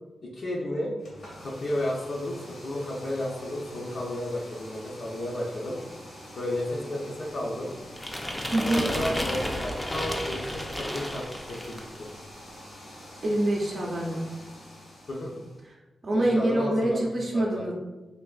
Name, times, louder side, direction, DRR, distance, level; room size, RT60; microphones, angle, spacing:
voice 1, 0.2-0.9 1.4-2.4 2.6-5.8 6.4-7.7 8.7-12.1 15.1-15.3 16.1-17.0 17.3-17.7, left 1 dB, 60° left, -4 dB, 0.5 m, -32 dB
sound 1, 1.0-15.6, equal, 75° left, 1.0 m, -46 dB
sound 2, 8.0-12.0, left 1 dB, 10° left, 0.4 m, -32 dB
voice 2, 8.5-8.8 13.2-14.3 16.0-17.7, right 1 dB, 45° right, -3 dB, 0.5 m, -25 dB
3.3 x 2.5 x 2.3 m, 1.1 s
cardioid pair, 85°, 0 cm